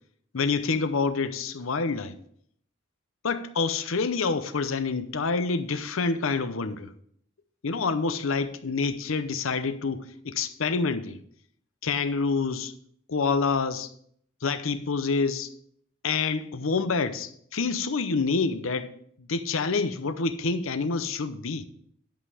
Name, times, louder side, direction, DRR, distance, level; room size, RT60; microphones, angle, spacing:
voice 1, 0.3-2.2 3.2-6.9 7.6-11.2 11.8-12.7 13.1-13.9 14.4-15.5 16.0-18.9 19.2-21.6, left 4 dB, 85° left, 0.7 m, -27 dB
10.5 x 5.6 x 4.9 m
head